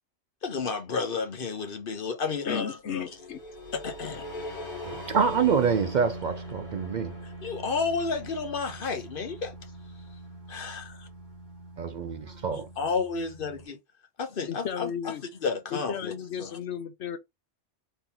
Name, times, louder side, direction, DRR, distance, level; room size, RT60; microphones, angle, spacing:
voice 1, 0.4-3.1 3.7-4.3 7.4-9.5 10.5-11.1 12.5-13.8 14.2-14.9 15.4-16.1 16.4-16.5, left 5 dB, 55° left, 1.1 m, -31 dB
voice 2, 2.5-3.4 14.5-15.2 15.7-17.2, left 8 dB, 85° left, 1.0 m, -34 dB
sound 1, 2.9-13.7, equal, 35° left, 2.1 m, -42 dB
voice 3, 4.8-7.2 11.8-12.7, right 6 dB, 60° right, 0.5 m, -26 dB
3.8 x 3.3 x 4.1 m
omnidirectional pair, 1.1 m